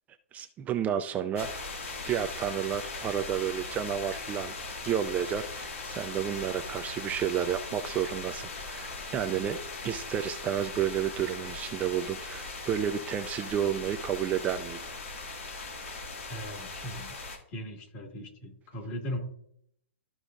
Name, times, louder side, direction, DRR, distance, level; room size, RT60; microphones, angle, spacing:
voice 1, 0.3-1.6 2.0-4.5 4.8-9.6 9.8-14.8, right 9 dB, 20° right, 8 dB, 0.4 m, -31 dB
sound 1, 1.3-17.4, left 3 dB, 80° left, 2.2 m, -39 dB
voice 2, 16.3-17.1 17.5-19.2, equal, 35° left, 2 dB, 2.2 m, -38 dB
13.5 x 4.9 x 2.5 m, 0.69 s
hypercardioid pair, 135°, 7 cm